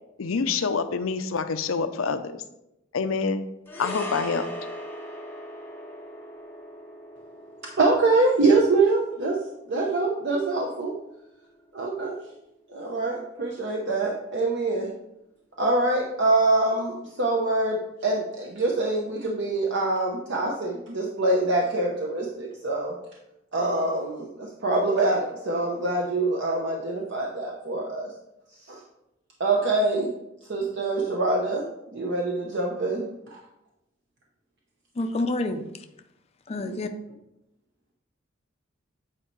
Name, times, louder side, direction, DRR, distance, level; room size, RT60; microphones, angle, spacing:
voice 1, 0.2-2.4 2.9-3.4 3.8-4.5, left 5 dB, 90° left, 10 dB, 0.5 m, -26 dB
sound 1, 3.7-12.1 12.4-12.6, equal, 10° left, 0.8 m, -40 dB
voice 2, 7.8-9.4 9.7-10.9 11.7-12.2 12.7-14.9 15.6-22.9 23.5-28.1 28.7-28.8 29.4-30.1 30.5-31.6 31.9-33.4, right 2 dB, 60° right, -1 dB, 0.8 m, -24 dB
voice 3, 35.0-35.7 36.5-36.9, left 2 dB, 30° left, 6 dB, 0.4 m, -28 dB
8.5 x 4.4 x 3.1 m, 0.85 s
head